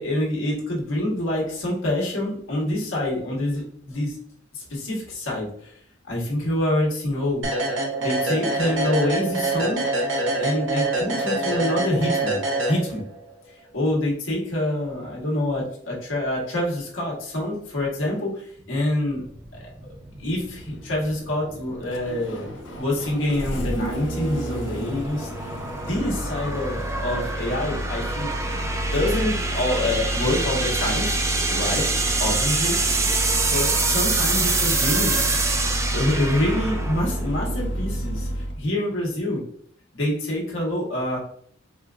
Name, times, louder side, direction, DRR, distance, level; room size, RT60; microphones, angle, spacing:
voice 1, 0.0-4.2 4.5-5.7 6.1-7.5 8.0-9.9 10.4-12.4 12.7-13.0 13.7-19.2 20.2-22.5 22.8-25.5 25.8-31.2 31.5-31.8 32.2-32.7 33.5-35.2 35.9-39.4 39.9-41.2, left 1 dB, 90° left, -3 dB, 1.2 m, -26 dB
sound 1, 7.4-13.2, right 2 dB, 65° right, 0.8 m, -25 dB
sound 2, 19.2-38.3, right 3 dB, 15° right, 0.3 m, -27 dB
Engine starting, 20.2-38.6, equal, 70° left, 0.5 m, -30 dB
4.3 x 2.4 x 2.3 m, 0.63 s
head